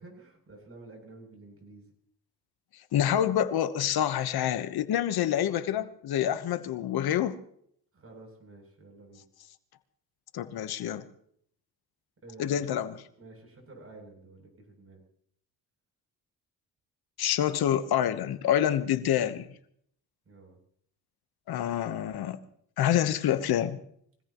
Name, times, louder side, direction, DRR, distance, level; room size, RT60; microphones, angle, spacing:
voice 1, 0.0-1.9 7.9-9.2 12.2-12.6 13.2-15.0 20.2-20.6, right 2 dB, 35° right, 8.0 m, -50 dB
voice 2, 2.9-7.4 10.3-11.0 12.4-12.9 17.2-19.5 21.5-22.4 22.8-23.8, left 10 dB, 80° left, 1.2 m, -27 dB
24.5 x 17.5 x 3.1 m
cardioid pair, 100°, 37 cm